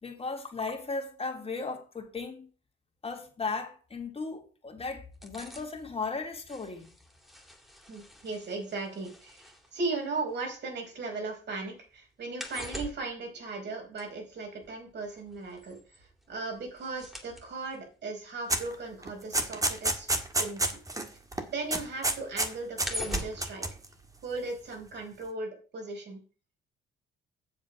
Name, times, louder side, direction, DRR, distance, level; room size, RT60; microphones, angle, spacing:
voice 1, 0.0-2.5 3.0-6.9, left 4 dB, 30° left, 2.9 m, -36 dB
sound 1, 5.1-11.2 11.5-21.2 21.5-24.6 24.9-25.0, equal, ahead, 2.9 m, -44 dB
voice 2, 7.9-20.1 20.4-20.8 21.3-23.7 24.2-26.2, right 3 dB, 60° right, 4.7 m, -37 dB
sound 2, 18.5-18.7 19.0-21.1 21.3-21.4 21.7-22.5 22.8-23.8, right 2 dB, 15° right, 1.8 m, -29 dB
8.0 x 7.3 x 6.3 m
cardioid pair, 90°, 20 cm